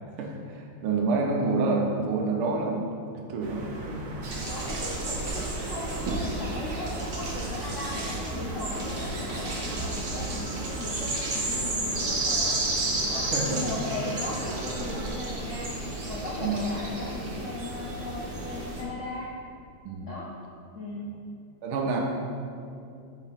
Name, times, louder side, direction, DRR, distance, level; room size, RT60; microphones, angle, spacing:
voice 1, 0.2-2.8 3.3-4.1 13.3-13.6 16.4-16.6 19.9-20.1 21.6-22.0, right 3 dB, 85° right, 0 dB, 1.8 m, -28 dB
sound 1, 3.4-15.1, right 2 dB, 70° right, 1.4 m, -38 dB
sound 2, 4.2-18.8, right 2 dB, 50° right, 0.6 m, -32 dB
voice 2, 4.5-12.6 13.1-19.3 20.0-20.3 20.7-21.1, left 2 dB, 70° left, -5 dB, 0.7 m, -37 dB
5.0 x 5.0 x 5.8 m, 2.5 s
omnidirectional pair, 2.3 m